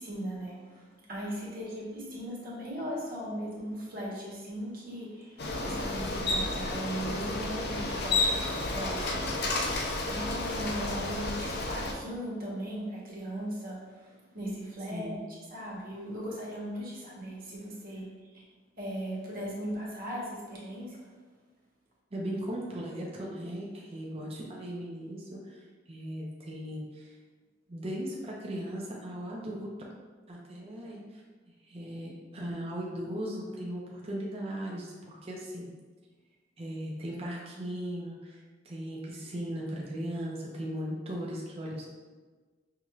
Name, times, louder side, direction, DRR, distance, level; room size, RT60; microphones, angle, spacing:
voice 1, 0.0-9.4 10.1-15.2 15.5-18.4 18.8-21.1, equal, 50° right, -5 dB, 1.1 m, -38 dB
Bicycle, 5.4-11.9, left 2 dB, 60° left, 0.5 m, -31 dB
voice 2, 14.9-15.2 22.1-27.1 27.7-29.9 30.3-31.2 31.6-35.7 36.6-41.9, equal, 30° right, -3 dB, 0.5 m, -38 dB
5.5 x 3.0 x 2.4 m, 1.4 s
head